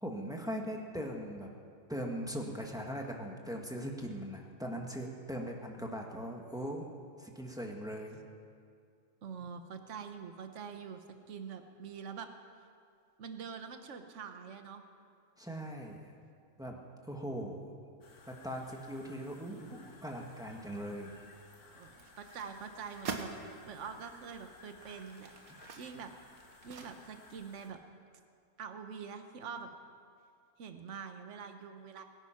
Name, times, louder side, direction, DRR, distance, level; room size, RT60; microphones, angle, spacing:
voice 1, 0.0-1.5 1.9-6.8 7.2-8.2 15.4-16.0 16.6-16.8 17.0-17.7 18.3-21.1, equal, 5° right, 0 dB, 1.5 m, -40 dB
voice 2, 9.2-12.3 13.2-14.8 21.6-26.1 26.6-27.8 28.6-29.7 30.6-32.0, right 6 dB, 55° right, 7 dB, 1.3 m, -45 dB
sound 1, 18.0-27.7, left 3 dB, 85° left, 2.3 m, -58 dB
sound 2, 21.8-23.4 24.0-24.1 24.7-27.4 27.7-27.8, right 5 dB, 70° right, 1.6 m, -45 dB
22.0 x 9.9 x 5.9 m, 2.3 s
omnidirectional pair, 1.6 m